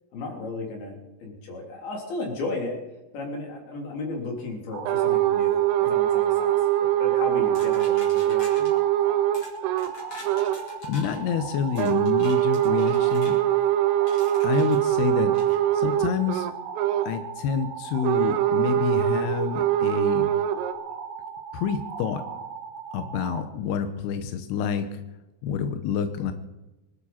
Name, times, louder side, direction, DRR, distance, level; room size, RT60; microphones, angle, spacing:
voice 1, 0.1-2.8 3.1-6.5 7.0-8.7, left 2 dB, 55° left, 1 dB, 4.8 m, -34 dB
sound 1, 4.7-23.4, right 6 dB, 65° right, 2.8 m, -38 dB
sound 2, 4.9-9.9 10.2-10.6 11.8-17.2 18.0-20.7, right 13 dB, 85° right, 3.5 m, -23 dB
sound 3, 7.5-8.7 9.3-9.5 9.8-11.2 11.7-13.4 14.1-14.8 15.3-15.6, left 1 dB, 30° left, 4.8 m, -44 dB
voice 2, 10.8-13.4 14.4-15.3 15.7-16.5 17.1-20.3 21.5-22.2 22.9-24.9 25.4-26.3, left 8 dB, 75° left, 8 dB, 2.4 m, -28 dB
24.5 x 12.5 x 4.3 m, 1.0 s
omnidirectional pair, 5.7 m